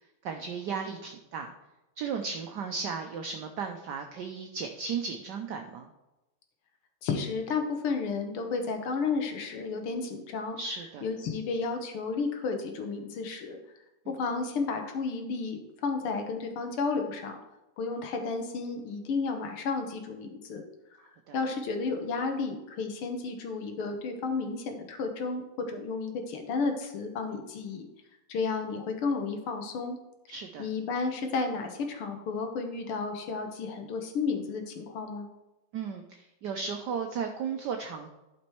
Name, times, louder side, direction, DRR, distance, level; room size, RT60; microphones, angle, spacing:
voice 1, 0.2-1.5 2.0-5.9 10.6-11.1 21.3-21.4 30.3-30.7 35.7-38.1, right 6 dB, 65° right, 5 dB, 1.1 m, -35 dB
voice 2, 7.0-10.6 11.0-13.6 14.1-17.4 17.8-20.6 21.3-27.9 28.3-30.0 30.6-35.3, left 4 dB, 80° left, 5 dB, 2.1 m, -32 dB
11.5 x 5.3 x 4.6 m, 0.98 s
omnidirectional pair, 2.4 m